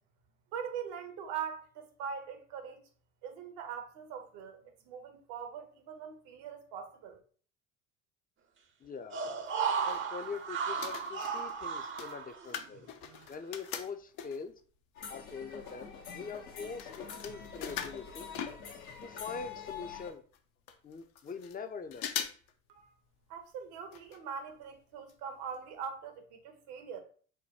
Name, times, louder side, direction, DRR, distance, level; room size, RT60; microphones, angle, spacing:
voice 1, 0.5-2.8 3.2-7.2 22.7-22.9 23.3-27.0, right 7 dB, 70° right, 1.0 m, -42 dB
voice 2, 8.8-9.2 9.8-12.9 13.3-14.5 15.1-18.3 19.0-20.2 20.8-22.3, left 5 dB, 20° left, 0.5 m, -43 dB
sound 1, 9.1-12.8 13.2-13.3, right 6 dB, 30° right, 0.6 m, -35 dB
sound 2, 9.5-10.4 10.7-14.6 15.2-15.3 15.5-19.1 19.4-19.5 19.7-19.8 20.3-20.4 20.7-21.6 21.9-22.5 22.8-22.9 23.9-24.2 24.5-24.6 25.1-25.2 25.5-25.6, left 9 dB, 60° left, 0.7 m, -42 dB
sound 3, 14.9-20.1, left 7 dB, 85° left, 1.1 m, -45 dB
4.8 x 2.2 x 4.1 m
hypercardioid pair, 65°, 40 cm